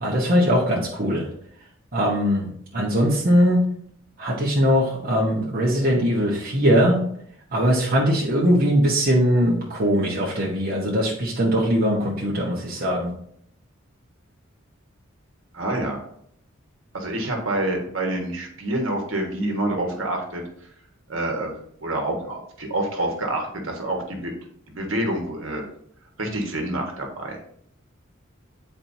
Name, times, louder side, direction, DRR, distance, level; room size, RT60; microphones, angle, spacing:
voice 1, 0.0-1.2 1.9-3.6 4.2-7.0 7.5-13.1, equal, 45° right, -4 dB, 1.1 m, -21 dB
voice 2, 15.5-16.0 16.9-20.4 21.1-24.3 24.7-25.6 26.2-27.4, right 1 dB, 70° right, 2 dB, 1.4 m, -27 dB
8.7 x 4.4 x 2.7 m, 0.66 s
head